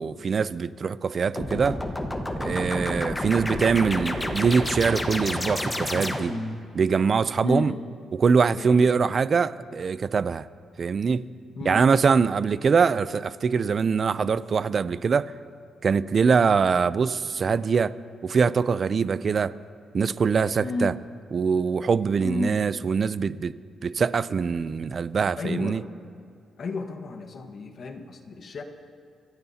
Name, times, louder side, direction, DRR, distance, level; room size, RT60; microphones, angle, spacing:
voice 1, 0.0-1.8 2.4-6.3 6.7-7.7 8.1-10.5 10.8-11.2 11.7-15.3 15.8-17.9 18.2-19.5 19.9-20.9 21.3-23.5 23.8-25.8, right 5 dB, 45° right, 16 dB, 0.4 m, -23 dB
sound 1, 1.4-6.6, left 1 dB, 15° left, 1.2 m, -30 dB
voice 2, 7.4-7.8 8.5-8.9 11.5-11.8 20.6-21.0 22.2-22.6 25.4-25.9 26.6-28.6, left 3 dB, 50° left, 5 dB, 1.3 m, -32 dB
26.0 x 15.5 x 2.8 m, 2.3 s
cardioid pair, 115°, 0 cm